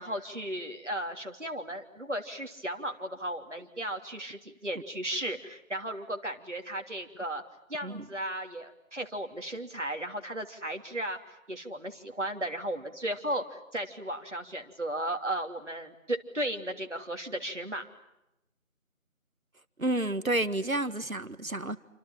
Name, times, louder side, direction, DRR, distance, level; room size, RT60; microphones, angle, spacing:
voice 1, 0.0-7.4 7.7-11.2 11.5-17.9, right 1 dB, 60° right, 3.2 m, -35 dB
voice 2, 19.8-21.8, right 2 dB, 85° right, 1.7 m, -30 dB
29.0 x 26.0 x 7.5 m
figure-of-eight pair, 175°, 40 cm